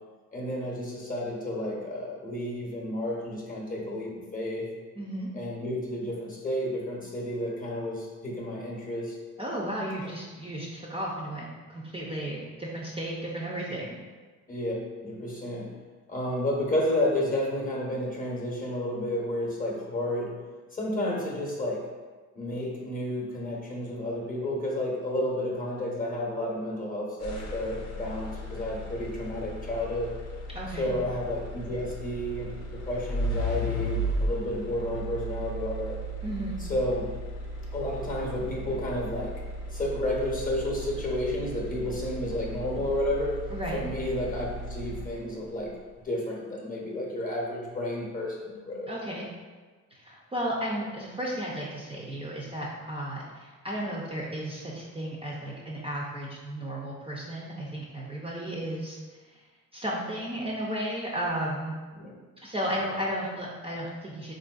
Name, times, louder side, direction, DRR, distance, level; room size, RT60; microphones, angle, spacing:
voice 1, 0.3-4.7 5.3-9.2 10.0-10.1 14.5-15.7 16.1-20.4 20.7-21.9 22.3-30.1 30.8-36.0 36.6-37.1 37.7-39.4 39.7-43.4 43.7-45.7 46.0-48.9 62.0-62.2, left 1 dB, 30° left, -2 dB, 0.7 m, -31 dB
voice 2, 5.0-5.3 9.4-13.9 30.5-30.9 36.2-36.6 43.5-43.8 48.9-49.3 49.9-59.0 59.7-61.7 62.4-64.3, right 1 dB, 20° right, -4 dB, 0.5 m, -34 dB
sound 1, 27.2-45.5, equal, 60° left, 0.6 m, -35 dB
3.5 x 2.5 x 2.3 m, 1.4 s
cardioid pair, 90°, 30 cm